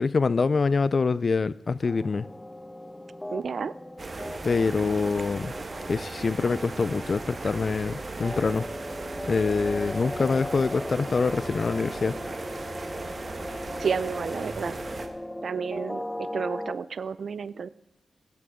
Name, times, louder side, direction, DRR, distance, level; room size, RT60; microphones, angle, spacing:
voice 1, 0.0-2.3 4.4-5.5 5.9-8.7 9.3-12.2, left 4 dB, 55° left, 18 dB, 0.4 m, -25 dB
sound 1, 1.8-16.7, left 1 dB, 15° left, 0.7 m, -38 dB
voice 2, 3.3-3.7 13.8-14.8 15.4-17.7, right 6 dB, 70° right, 17 dB, 0.4 m, -31 dB
sound 2, 4.0-15.1, right 3 dB, 50° right, 1.2 m, -37 dB
17.5 x 9.2 x 3.7 m, 0.96 s
cardioid pair, 55°, 0 cm